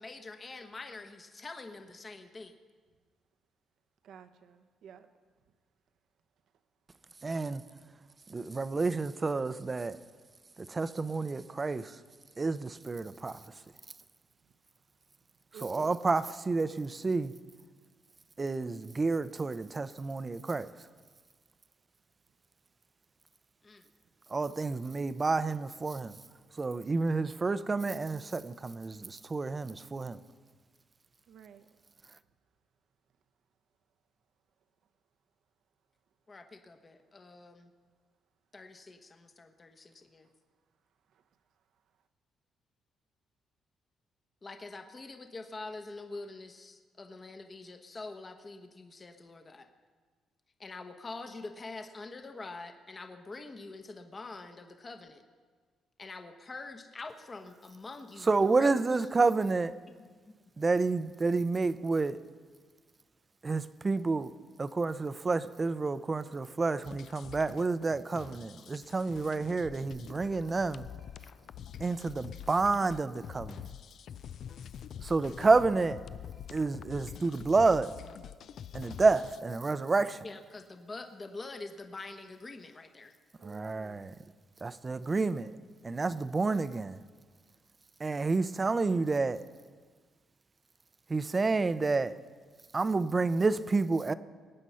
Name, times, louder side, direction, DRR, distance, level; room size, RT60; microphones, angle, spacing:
voice 1, 0.0-2.5 23.6-23.9 36.3-37.7 38.5-40.3 44.4-49.7 50.6-55.2 56.0-59.0 80.2-83.1, left 3 dB, 30° left, 7 dB, 1.1 m, -45 dB
voice 2, 4.0-5.1 11.5-11.6 15.5-15.8 31.3-31.7 83.4-84.0, right 8 dB, 75° right, 9 dB, 0.9 m, -52 dB
voice 3, 7.2-7.6 8.3-10.0 10.6-12.0 12.4-13.4 15.6-17.3 18.4-20.7 24.3-26.2 26.6-30.2 58.3-59.7 60.6-62.2 63.4-64.3 64.6-70.9 71.8-73.6 75.0-76.0 76.5-77.9 78.7-80.2 83.4-84.1 84.6-85.5 85.8-87.0 88.0-89.4 91.1-92.1 92.7-94.1, right 3 dB, 30° right, 14 dB, 0.6 m, -29 dB
sound 1, 66.8-79.4, left 9 dB, 65° left, 0.4 m, -46 dB
21.0 x 9.0 x 5.6 m, 1.5 s
cardioid pair, 90°, 0 cm